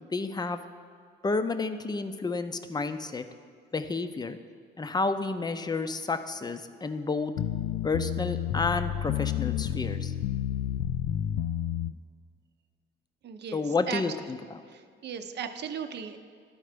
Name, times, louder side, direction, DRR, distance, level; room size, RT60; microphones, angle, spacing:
voice 1, 0.0-0.6 1.2-3.2 3.7-4.4 4.8-7.3 7.8-10.1 13.5-14.6, left 3 dB, 20° left, 9 dB, 0.5 m, -30 dB
sound 1, 7.4-11.9, left 11 dB, 85° left, 0.4 m, -30 dB
voice 2, 13.2-14.0 14.7-16.2, right 7 dB, 60° right, 8 dB, 0.7 m, -37 dB
12.0 x 4.4 x 5.0 m, 2.2 s
cardioid pair, 90°, 20 cm